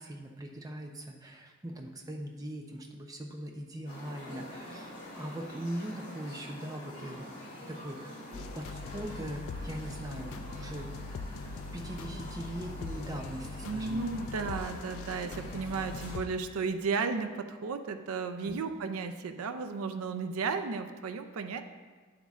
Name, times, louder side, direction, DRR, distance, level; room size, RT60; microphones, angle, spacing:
voice 1, 0.0-7.3 7.7-10.9 11.3-11.5 11.7-14.0 18.4-18.6, right 1 dB, 15° right, 2 dB, 0.5 m, -41 dB
sound 1, 3.8-16.2, left 1 dB, 35° left, 2.3 m, -46 dB
sound 2, 8.3-16.2, left 3 dB, 65° left, 0.3 m, -42 dB
voice 2, 13.6-21.6, right 4 dB, 80° right, 8 dB, 0.5 m, -34 dB
9.2 x 8.0 x 2.4 m, 1.5 s
head